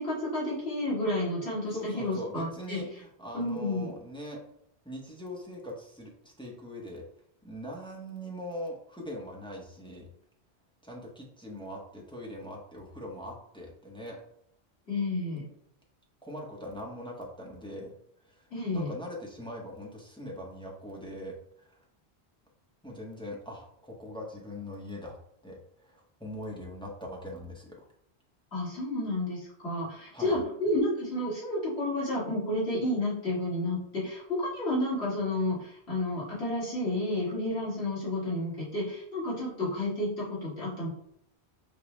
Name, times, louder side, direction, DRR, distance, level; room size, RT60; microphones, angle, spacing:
voice 1, 0.0-2.8 3.3-3.9 14.9-15.4 18.5-18.9 28.5-40.9, left 1 dB, 70° left, -9 dB, 1.9 m, -31 dB
voice 2, 1.7-4.4 4.8-7.0 7.4-10.1 10.8-14.2 16.2-17.9 18.2-21.8 22.8-25.2 25.4-27.9 30.1-30.4, equal, 5° left, -2 dB, 0.5 m, -41 dB
5.1 x 2.0 x 3.0 m, 0.72 s
omnidirectional pair, 1.1 m